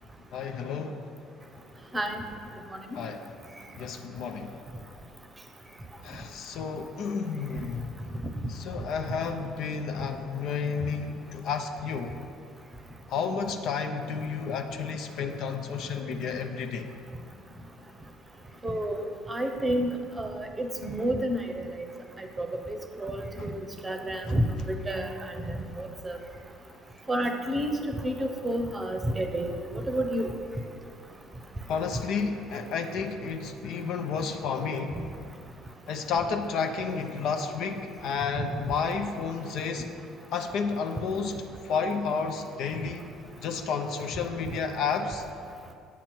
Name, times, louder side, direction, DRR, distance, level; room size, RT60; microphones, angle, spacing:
voice 1, 0.3-1.1 2.9-3.3 3.8-4.6 6.0-7.9 8.5-12.1 13.1-16.9 31.7-34.9 35.9-39.9 40.3-43.1 43.4-45.3, left 5 dB, 60° left, 5 dB, 0.5 m, -31 dB
voice 2, 18.6-21.4 21.8-21.9 22.2-22.5 23.0-23.6 23.8-26.2 27.1-27.7 28.0-30.3, right 1 dB, 20° right, 5 dB, 0.8 m, -30 dB
8.2 x 2.9 x 6.2 m, 2.4 s
hypercardioid pair, 60°, 0 cm